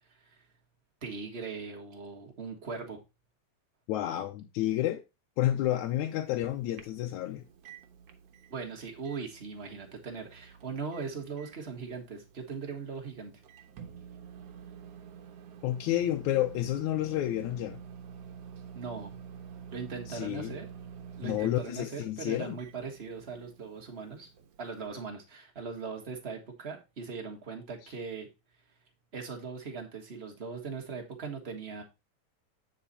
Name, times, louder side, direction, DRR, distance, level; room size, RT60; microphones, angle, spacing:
voice 1, 1.0-3.0 8.5-13.3 18.7-19.2 19.7-20.7 21.2-24.3 24.6-28.3 29.1-31.8, right 5 dB, 30° right, 1.2 m, -40 dB
voice 2, 3.9-5.0 5.4-7.5 15.6-17.8 20.1-20.6 21.2-22.6, left 13 dB, 80° left, 2.1 m, -30 dB
Microwave oven, 5.6-24.9, right 7 dB, 60° right, 1.8 m, -49 dB
9.0 x 4.6 x 4.1 m
omnidirectional pair, 3.4 m